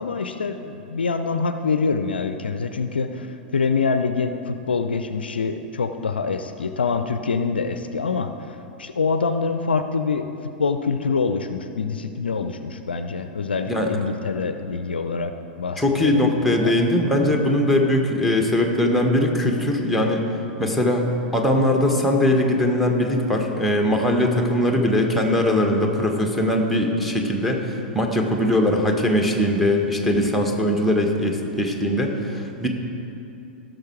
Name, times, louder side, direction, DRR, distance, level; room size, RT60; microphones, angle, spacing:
voice 1, 0.0-8.5 8.8-10.3 10.6-15.3 15.6-16.2 16.6-16.7, left 4 dB, 75° left, 9 dB, 0.5 m, -25 dB
voice 2, 15.8-20.3 20.6-32.7, left 1 dB, ahead, 1 dB, 1.4 m, -21 dB
16.0 x 6.4 x 4.6 m, 2.8 s
figure-of-eight pair, 95°, 5 cm